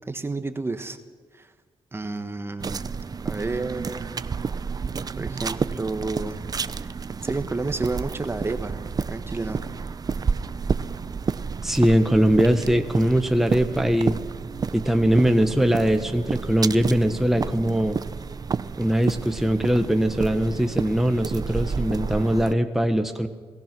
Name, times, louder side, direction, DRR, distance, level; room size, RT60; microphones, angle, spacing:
voice 1, 0.1-1.0 1.3-1.5 1.9-2.8 3.2-4.1 5.2-6.4 6.8-6.9 7.2-8.8 9.1-9.6, right 3 dB, 25° right, 8 dB, 1.4 m, -30 dB
sound 1, 2.6-22.5, right 5 dB, 40° right, 0.7 m, -30 dB
voice 2, 11.6-14.2 14.7-18.0 18.8-23.3, equal, 5° right, 6 dB, 1.3 m, -21 dB
27.5 x 17.5 x 6.2 m, 1.5 s
cardioid pair, 80°, 10 cm